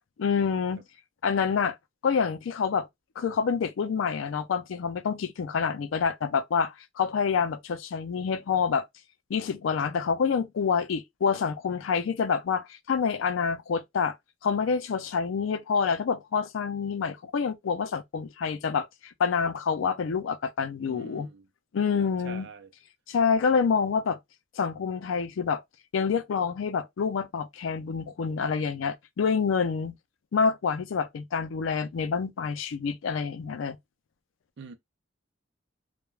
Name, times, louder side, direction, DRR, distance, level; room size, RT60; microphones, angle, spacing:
voice 1, 0.2-0.8 1.2-1.8 2.0-2.9 3.2-8.8 9.3-14.2 14.4-21.3 21.7-22.5 23.1-24.2 24.6-25.6 25.9-29.9 30.3-33.8, left 6 dB, 85° left, 0.4 m, -27 dB
voice 2, 20.8-21.5 22.0-22.7 34.6-34.7, right 5 dB, 60° right, 0.5 m, -45 dB
2.3 x 2.2 x 3.1 m
head